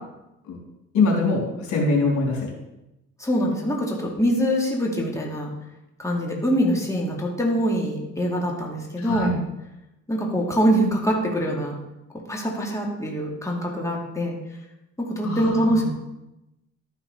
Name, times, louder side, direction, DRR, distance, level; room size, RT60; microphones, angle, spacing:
voice 1, 0.9-2.5 9.0-9.4 15.2-15.9, left 3 dB, 75° left, -1 dB, 3.7 m, -23 dB
voice 2, 3.2-5.5 6.0-9.3 10.1-11.7 12.3-14.4 15.0-15.9, equal, 10° left, -2 dB, 2.3 m, -24 dB
12.5 x 5.8 x 5.6 m, 0.92 s
cardioid pair, 90°, 30 cm